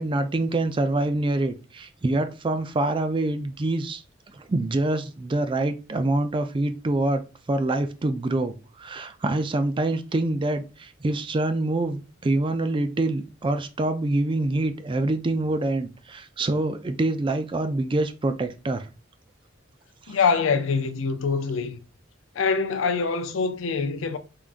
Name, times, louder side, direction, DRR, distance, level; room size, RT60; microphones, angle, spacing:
voice 1, 0.0-4.0 4.3-7.2 7.5-18.9 20.1-20.2, right 2 dB, 25° right, 0.4 m, -26 dB
voice 2, 20.1-21.8 22.3-24.2, left 5 dB, 80° left, 0.5 m, -24 dB
3.7 x 3.4 x 2.4 m
head